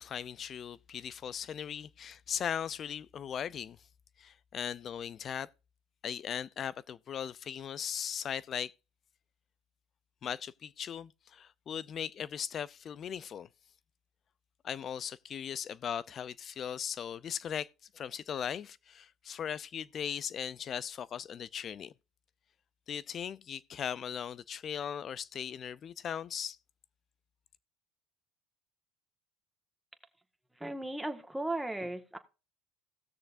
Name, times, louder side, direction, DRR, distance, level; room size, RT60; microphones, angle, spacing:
voice 1, 0.0-3.8 4.2-5.5 6.0-8.7 10.2-13.5 14.6-17.7 17.9-21.9 22.9-26.6, left 8 dB, 40° left, 0.5 m, -38 dB
voice 2, 30.5-32.2, right 1 dB, 5° right, 1.5 m, -36 dB
17.5 x 6.6 x 2.6 m
supercardioid pair, 90°, 0 cm